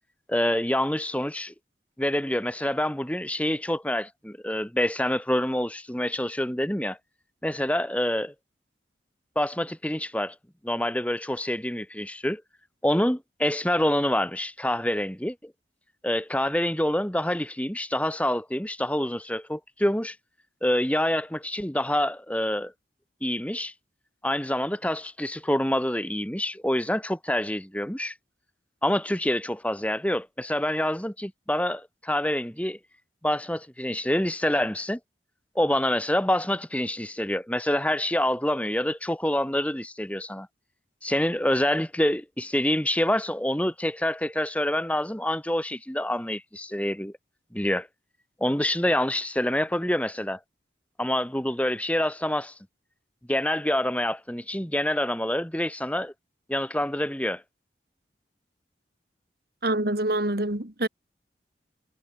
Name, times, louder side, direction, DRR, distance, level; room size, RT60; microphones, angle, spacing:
voice 1, 0.3-1.5 2.0-7.0 7.4-8.3 9.4-10.3 10.6-12.4 12.8-15.5 16.0-20.2 20.6-22.7 23.2-23.7 24.2-28.1 28.8-32.8 33.2-35.0 35.6-40.5 41.0-47.1 47.5-47.9 48.4-50.4 51.0-52.5 53.3-56.1 56.5-57.4, left 1 dB, 10° left, 2.3 m, -26 dB
voice 2, 59.6-60.9, right 1 dB, 60° right, 2.8 m, -26 dB
head